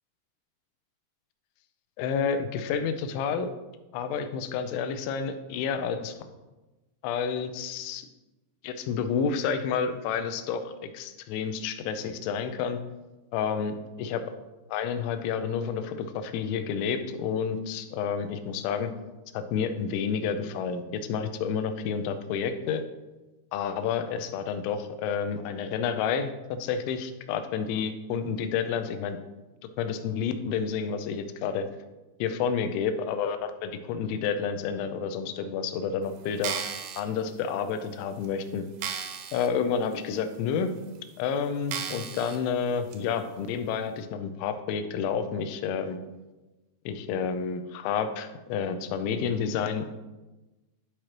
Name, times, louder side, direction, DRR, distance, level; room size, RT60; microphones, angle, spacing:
voice 1, 2.0-3.5 3.9-6.1 7.0-8.1 8.6-12.8 13.3-14.2 14.7-18.9 19.3-22.8 23.5-26.3 26.6-29.2 29.8-31.7 32.2-36.5 37.0-38.6 39.3-40.7 41.2-46.0 46.9-49.9, left 6 dB, 85° left, 8 dB, 3.0 m, -30 dB
sound 1, 36.3-37.0 37.7-37.8 38.2-38.3 38.8-39.5 39.9-40.0 40.8-40.9 41.7-42.4 42.9-43.0, right 8 dB, 85° right, 2.9 m, -34 dB
11.5 x 4.8 x 3.0 m, 1.1 s
omnidirectional pair, 5.4 m